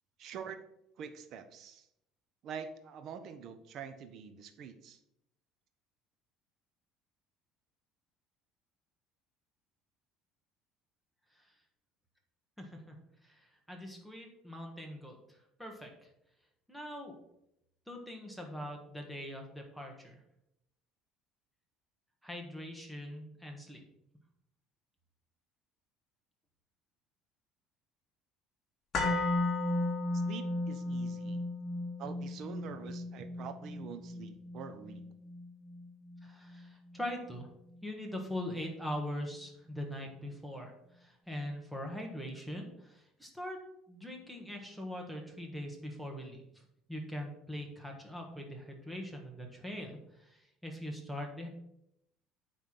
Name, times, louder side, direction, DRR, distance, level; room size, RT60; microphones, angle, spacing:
voice 1, 0.2-0.6 1.0-1.9 2.4-5.0 30.2-31.4 32.0-35.0, right 7 dB, 50° right, 9 dB, 0.9 m, -45 dB
voice 2, 12.6-13.0 13.2-16.1 16.7-17.1 17.9-20.2 22.2-23.8 36.2-37.5 37.8-43.6 43.9-46.4 46.9-51.5, left 1 dB, ahead, 1 dB, 1.6 m, -42 dB
sound 1, 28.9-37.0 37.3-37.4, left 2 dB, 35° left, 2.2 m, -35 dB
9.0 x 3.5 x 6.0 m, 0.79 s
cardioid pair, 135°, 0 cm